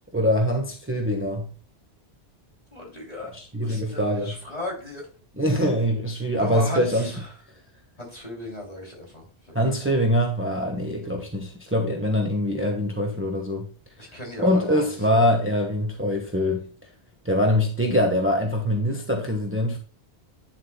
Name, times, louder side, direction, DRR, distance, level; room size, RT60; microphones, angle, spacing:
voice 1, 0.1-1.5 3.3-4.3 5.4-7.1 9.5-13.7 14.4-16.7 17.2-19.8, equal, 10° right, 1.2 m, -23 dB
voice 2, 2.7-3.3 3.6-5.1 6.4-7.2 8.0-9.3 9.7-9.8 14.0-15.3, left 2 dB, 35° left, 3.1 m, -35 dB
9.6 x 7.5 x 2.2 m
omnidirectional pair, 1.1 m